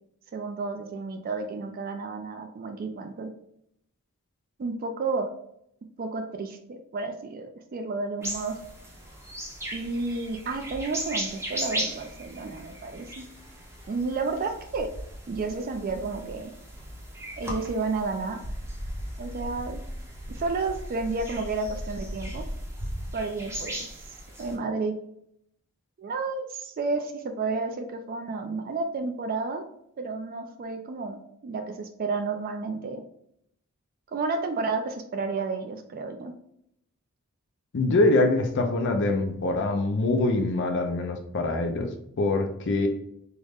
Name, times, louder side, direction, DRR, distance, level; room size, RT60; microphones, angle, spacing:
voice 1, 0.3-3.3 4.6-5.3 6.0-8.6 9.7-13.3 13.9-14.9 15.3-16.5 17.4-18.4 19.2-19.8 20.3-22.4 23.1-24.1 24.4-25.0 26.0-29.6 30.0-33.0 34.1-36.3, right 3 dB, 40° right, 6 dB, 0.3 m, -31 dB
sound 1, 8.2-24.5, equal, 10° right, 0.7 m, -37 dB
voice 2, 37.7-41.9 42.2-42.9, left 2 dB, 55° left, 4 dB, 0.5 m, -24 dB
3.7 x 2.1 x 3.4 m, 0.74 s
head